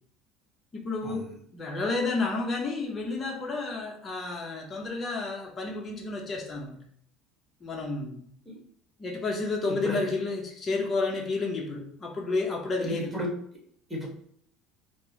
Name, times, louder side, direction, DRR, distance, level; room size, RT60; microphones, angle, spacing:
voice 1, 0.7-6.8 7.6-8.3 9.0-13.1, left 3 dB, 30° left, 0 dB, 0.7 m, -31 dB
voice 2, 9.7-10.1 12.8-13.3 13.9-14.1, equal, 10° right, -2 dB, 1.3 m, -34 dB
4.4 x 2.0 x 2.8 m, 0.64 s
supercardioid pair, 100°, 0 cm